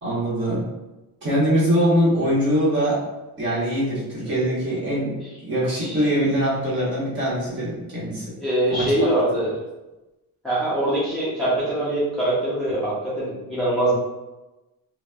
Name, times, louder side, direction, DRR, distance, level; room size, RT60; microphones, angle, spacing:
voice 1, 0.0-0.7 1.2-3.0 3.4-5.1 5.4-8.3 8.7-9.1, equal, 30° right, -8 dB, 1.1 m, -22 dB
voice 2, 4.7-5.0 5.8-6.1 8.4-9.5 10.4-14.0, right 1 dB, ahead, -11 dB, 0.4 m, -23 dB
2.9 x 2.0 x 2.3 m, 1.0 s
cardioid pair, 155°, 37 cm